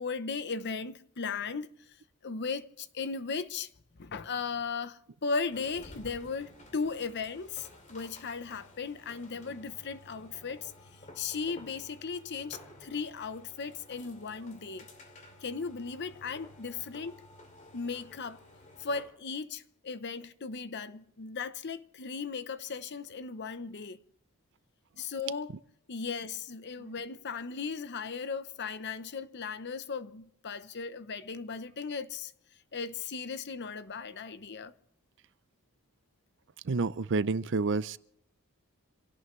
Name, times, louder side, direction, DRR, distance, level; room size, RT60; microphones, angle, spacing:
voice 1, 0.0-1.7 2.2-3.7 4.0-10.7 11.2-14.9 15.4-17.3 17.7-18.4 18.8-24.0 25.0-25.5 25.9-32.3 32.7-34.7, left 5 dB, 50° left, 0.8 m, -37 dB
sound 1, 5.5-19.2, left 1 dB, 35° left, 2.5 m, -53 dB
voice 2, 36.6-38.0, right 3 dB, 55° right, 0.5 m, -29 dB
26.5 x 17.0 x 3.2 m
head